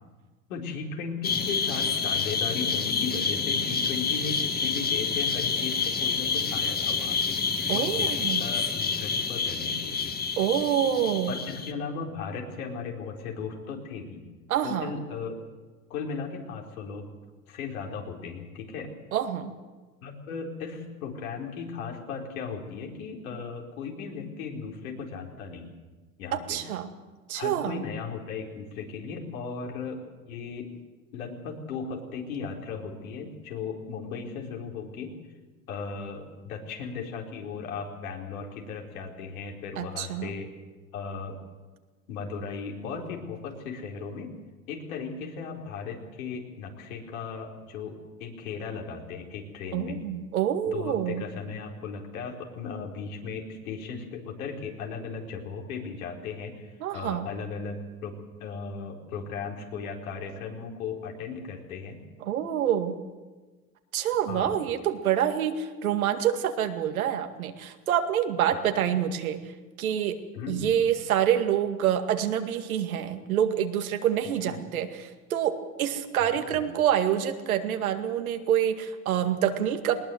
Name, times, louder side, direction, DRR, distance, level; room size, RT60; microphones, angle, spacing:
voice 1, 0.5-7.4 7.7-8.1 8.4-10.2 11.3-14.2 14.6-15.4 15.9-17.1 17.5-18.9 20.0-25.7 26.2-26.6 27.3-30.0 30.3-30.7 31.1-35.2 35.7-40.5 40.9-41.4 42.1-44.3 44.7-50.0 50.7-56.5 56.9-62.0 64.3-64.5 68.5-68.9 70.3-70.7 74.4-74.6 76.3-76.6, left 5 dB, 80° left, 1 dB, 4.5 m, -36 dB
sound 1, 1.2-11.7, left 5 dB, 20° left, 2.1 m, -28 dB
voice 2, 7.7-8.5 10.4-11.3 14.5-14.9 19.1-19.5 26.3-26.9 27.3-27.8 39.8-40.4 49.7-51.3 56.8-57.3 62.2-63.0 63.9-69.5 69.8-70.2 70.5-80.0, right 10 dB, 85° right, 6 dB, 2.2 m, -27 dB
20.0 x 19.5 x 7.9 m, 1.3 s
hypercardioid pair, 95°, 42 cm